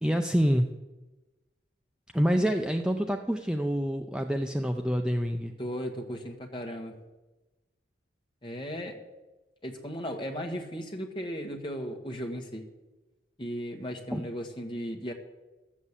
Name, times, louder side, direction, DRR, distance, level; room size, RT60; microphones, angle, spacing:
voice 1, 0.0-0.7 2.1-5.5 14.1-14.2, equal, 5° right, 4 dB, 0.5 m, -27 dB
voice 2, 5.6-6.9 8.4-8.9 9.6-12.6 13.4-15.1, equal, 25° left, 2 dB, 1.5 m, -36 dB
12.5 x 7.3 x 8.2 m, 1.1 s
head